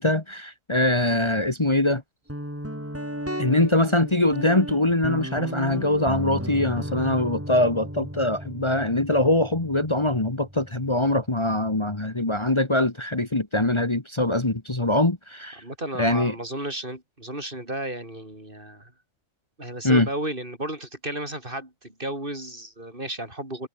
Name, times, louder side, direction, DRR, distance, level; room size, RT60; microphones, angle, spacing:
voice 1, 0.0-2.0 3.4-15.6 16.0-16.4 19.8-20.1, left 1 dB, 25° left, 2.0 m, -23 dB
Guitar, 2.3-11.8, equal, 10° right, 7.2 m, -35 dB
voice 2, 15.6-18.9 19.6-23.7, right 1 dB, 45° right, 6.2 m, -33 dB
omnidirectional pair, 1.3 m